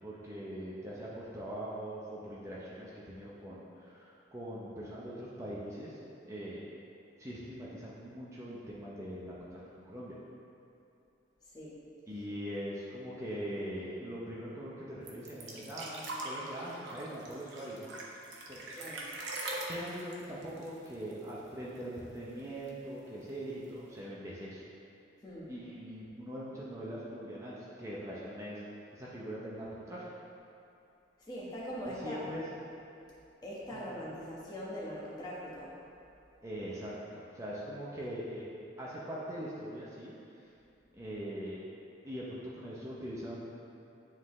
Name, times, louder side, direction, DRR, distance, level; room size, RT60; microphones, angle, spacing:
voice 1, 0.0-6.0 6.3-6.6 7.2-9.6 9.8-10.2 12.1-17.9 18.5-18.6 19.7-24.6 25.5-28.6 28.9-30.1 31.9-32.4 33.7-33.8 36.4-38.5 38.8-40.1 40.9-41.6 42.0-43.5, equal, 15° right, -7 dB, 0.7 m, -42 dB
sound 1, 15.1-21.5 21.8-21.9 22.2-22.9 23.7-23.8, right 2 dB, 70° right, 0.8 m, -42 dB
voice 2, 18.8-19.1 25.2-25.5 31.2-32.2 33.4-35.7, equal, 20° left, -7 dB, 1.2 m, -41 dB
9.7 x 3.7 x 3.2 m, 2.7 s
head